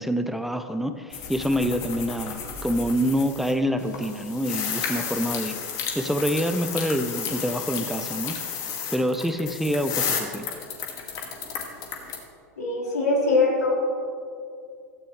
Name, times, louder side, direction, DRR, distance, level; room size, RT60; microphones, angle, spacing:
voice 1, 0.0-5.6 5.9-8.4 8.9-10.5, equal, ahead, 8 dB, 0.7 m, -26 dB
sound 1, 1.1-3.5 3.8-12.2, left 7 dB, 45° left, 2.3 m, -32 dB
voice 2, 12.6-13.9, left 3 dB, 85° left, -3 dB, 3.6 m, -22 dB
16.5 x 13.0 x 3.3 m, 2.4 s
hypercardioid pair, 95°, 9 cm